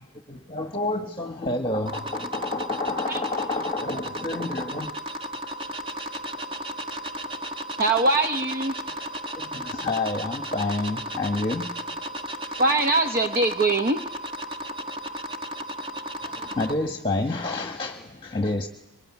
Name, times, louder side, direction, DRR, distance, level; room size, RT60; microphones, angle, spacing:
voice 1, 0.3-4.9 9.4-11.7 16.2-18.7, left 2 dB, 20° left, 4 dB, 1.3 m, -29 dB
sound 1, 1.9-16.7, right 1 dB, 25° right, 1.4 m, -34 dB
voice 2, 7.8-8.8 12.6-14.0, right 2 dB, 40° right, 7 dB, 0.9 m, -22 dB
24.0 x 23.5 x 9.8 m, 0.99 s
head